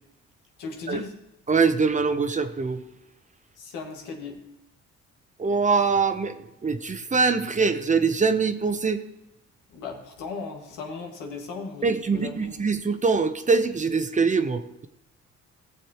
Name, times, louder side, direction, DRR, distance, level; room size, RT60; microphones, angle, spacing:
voice 1, 0.6-1.2 3.6-4.4 9.7-12.6, left 4 dB, 90° left, 2 dB, 1.8 m, -37 dB
voice 2, 1.5-2.8 5.4-9.0 11.8-14.9, right 4 dB, 25° right, 10 dB, 0.7 m, -23 dB
17.5 x 7.2 x 2.9 m, 0.84 s
cardioid pair, 90°, 30 cm